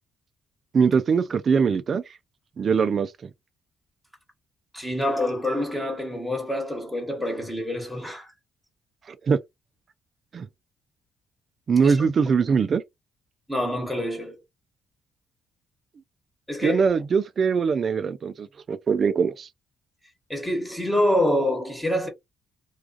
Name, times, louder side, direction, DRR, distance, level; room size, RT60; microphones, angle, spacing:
voice 1, 0.7-2.0 2.6-3.3 9.1-9.4 10.3-10.5 11.7-12.8 16.6-19.5, right 6 dB, 50° right, 0.3 m, -22 dB
voice 2, 4.7-8.3 11.8-12.1 13.5-14.4 16.5-16.8 20.3-22.1, left 1 dB, 10° left, 1.1 m, -26 dB
2.3 x 2.3 x 2.5 m
cardioid pair, 90°, 0 cm